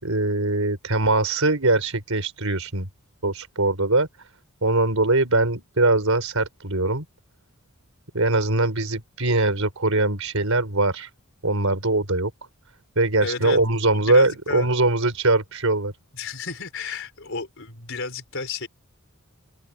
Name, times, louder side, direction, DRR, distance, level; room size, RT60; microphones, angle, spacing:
voice 1, 0.0-2.9 3.2-4.1 4.6-7.0 8.1-11.1 11.4-12.3 12.9-15.9, right 2 dB, 70° right, 5.0 m, -22 dB
voice 2, 13.2-13.6 13.9-14.7 16.1-18.7, left 4 dB, 60° left, 5.0 m, -32 dB
open air
head